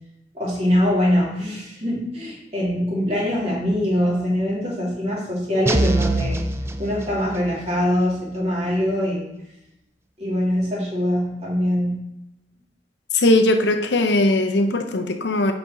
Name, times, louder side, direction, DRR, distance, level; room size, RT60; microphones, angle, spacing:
voice 1, 0.3-6.4 6.8-9.3 10.2-12.0, equal, 35° right, -5 dB, 2.5 m, -23 dB
sound 1, 5.7-7.6, right 2 dB, 15° right, 0.4 m, -24 dB
voice 2, 13.1-15.5, left 2 dB, 80° left, 6 dB, 0.7 m, -19 dB
7.0 x 5.2 x 4.2 m, 0.86 s
head